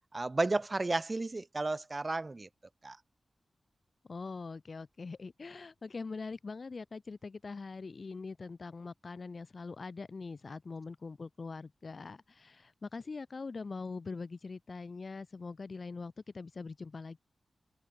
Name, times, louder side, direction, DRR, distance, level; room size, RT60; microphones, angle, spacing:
voice 1, 0.1-2.5 2.8-3.0, right 2 dB, 40° right, 3.0 m, -32 dB
voice 2, 4.1-17.2, left 4 dB, 55° left, 2.9 m, -43 dB
cardioid pair, 50°, 0 cm